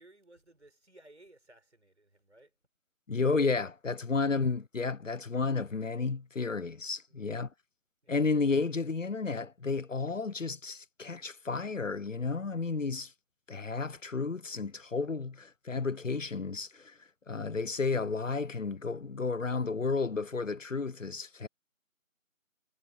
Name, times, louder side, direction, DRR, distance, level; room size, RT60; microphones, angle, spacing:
voice 1, 0.0-2.5 7.1-7.4 8.0-8.2, right 1 dB, 55° right, 6.4 m, -59 dB
voice 2, 3.1-7.5 8.1-13.1 13.5-21.5, left 4 dB, 65° left, 0.7 m, -32 dB
figure-of-eight pair, 170°, 41 cm